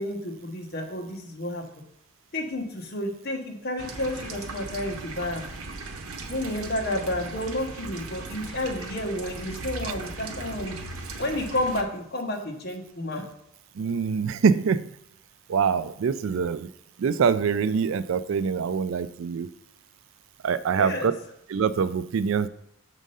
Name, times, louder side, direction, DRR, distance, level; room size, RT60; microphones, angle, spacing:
voice 1, 0.0-1.7 2.3-5.4 6.3-10.8 11.2-13.2 20.7-21.1, left 1 dB, 45° left, 2 dB, 1.0 m, -31 dB
sound 1, 3.8-11.8, right 3 dB, 85° right, 0.8 m, -38 dB
voice 2, 13.8-14.9 15.5-16.7 17.0-19.5 20.4-21.1 21.5-22.5, right 6 dB, 65° right, 14 dB, 0.3 m, -24 dB
6.3 x 3.7 x 5.4 m, 0.75 s
head